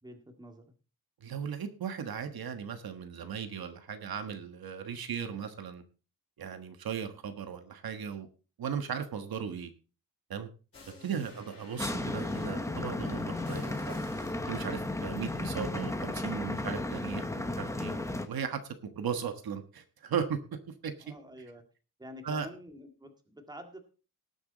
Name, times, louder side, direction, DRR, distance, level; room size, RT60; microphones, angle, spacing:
voice 1, 0.0-0.6 11.1-11.4 21.0-21.6 22.0-23.8, equal, 10° right, 5 dB, 1.9 m, -48 dB
voice 2, 1.2-5.8 6.4-8.3 8.6-9.7 10.3-10.5 11.0-14.0 14.5-18.6 18.9-20.4 20.8-20.9 22.2-22.5, right 7 dB, 75° right, 8 dB, 1.4 m, -37 dB
sound 1, 10.7-14.4 15.2-16.1, left 3 dB, 35° left, 5.7 m, -52 dB
sound 2, 11.8-18.3, left 2 dB, 10° left, 1.0 m, -34 dB
18.5 x 7.2 x 4.0 m, 0.35 s
wide cardioid pair, 170°, 37 cm